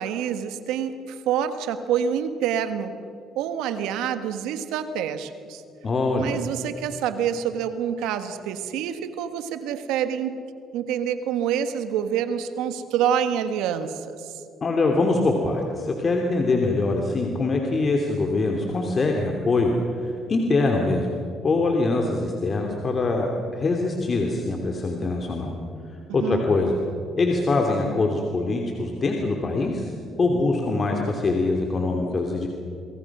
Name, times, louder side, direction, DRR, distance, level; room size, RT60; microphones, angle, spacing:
voice 1, 0.0-3.0 3.3-5.6 6.1-10.4 10.7-14.4 26.1-26.4, right 9 dB, 85° right, 10 dB, 1.5 m, -27 dB
voice 2, 5.8-6.4 14.6-21.1 21.4-25.5 26.1-26.8 27.2-29.9 30.2-32.5, left 3 dB, 45° left, 1 dB, 3.0 m, -23 dB
27.5 x 22.0 x 6.2 m, 2.6 s
supercardioid pair, 70°, 0 cm